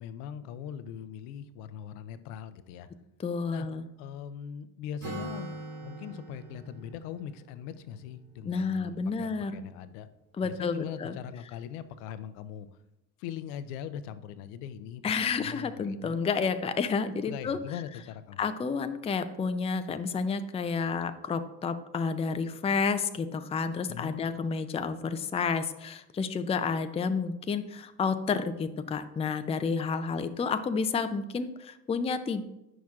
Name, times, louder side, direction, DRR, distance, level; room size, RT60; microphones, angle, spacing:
voice 1, 0.0-2.9 3.5-3.7 4.0-5.5 5.8-10.1 10.4-12.7 13.2-16.1 17.2-18.4 23.9-24.2, left 9 dB, 70° left, 13 dB, 0.6 m, -41 dB
voice 2, 3.2-3.8 8.4-9.6 10.4-11.2 15.0-17.6 18.4-32.4, left 5 dB, 15° left, 10 dB, 0.4 m, -30 dB
Acoustic guitar, 5.0-8.7, right 2 dB, 30° right, 2.3 m, -43 dB
9.0 x 6.1 x 2.4 m, 0.90 s
hypercardioid pair, 55°, 47 cm